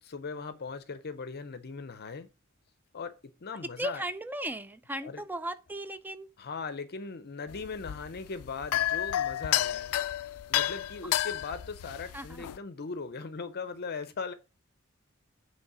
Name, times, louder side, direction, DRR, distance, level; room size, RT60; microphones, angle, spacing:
voice 1, 0.0-2.3 2.9-3.1 3.4-4.0 5.0-5.2 6.4-10.0 10.5-14.3, left 4 dB, 50° left, 0.6 m, -39 dB
voice 2, 3.6-6.3 12.1-12.4, right 1 dB, 10° right, 0.4 m, -36 dB
sound 1, 7.5-12.6, left 13 dB, 90° left, 0.3 m, -31 dB
8.2 x 3.2 x 5.9 m
head